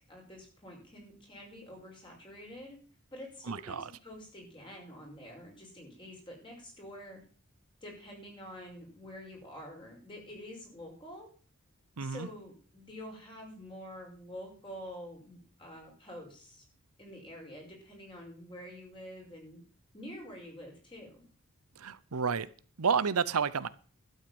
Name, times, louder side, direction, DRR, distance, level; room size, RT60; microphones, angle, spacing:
voice 1, 0.1-2.8 3.1-7.2 7.8-11.3 12.0-16.7 17.0-19.6 19.9-21.2, equal, 20° left, 0 dB, 5.7 m, -47 dB
voice 2, 3.5-3.9 12.0-12.3 21.8-22.5 22.8-23.7, right 6 dB, 85° right, 16 dB, 0.8 m, -30 dB
12.5 x 8.2 x 7.8 m, 0.41 s
head